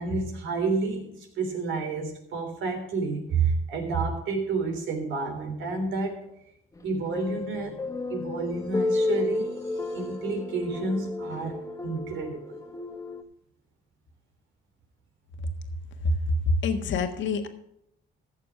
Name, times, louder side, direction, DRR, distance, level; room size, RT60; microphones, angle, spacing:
voice 1, 0.0-6.3 6.8-7.7 8.1-11.6 11.8-12.6, right 4 dB, 75° right, 3 dB, 3.4 m, -30 dB
sound 1, 6.8-13.2, left 2 dB, 15° left, 0.9 m, -32 dB
voice 2, 16.0-17.5, left 2 dB, 70° left, 6 dB, 1.5 m, -26 dB
14.5 x 6.7 x 4.9 m, 0.78 s
cardioid pair, 90°, 20 cm